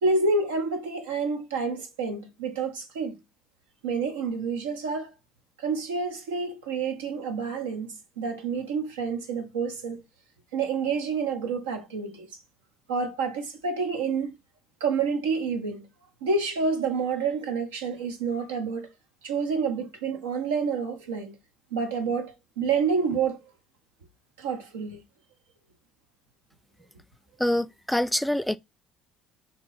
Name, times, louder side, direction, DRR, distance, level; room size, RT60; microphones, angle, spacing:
voice 1, 0.0-3.2 3.8-5.1 5.6-10.0 10.5-12.3 12.9-14.3 14.8-15.9 16.2-18.9 19.2-21.3 21.7-23.4 24.4-25.0, right 4 dB, 85° right, 0.8 m, -28 dB
voice 2, 27.4-28.6, left 1 dB, 5° left, 0.3 m, -25 dB
3.7 x 2.9 x 3.9 m
hypercardioid pair, 60°, 0 cm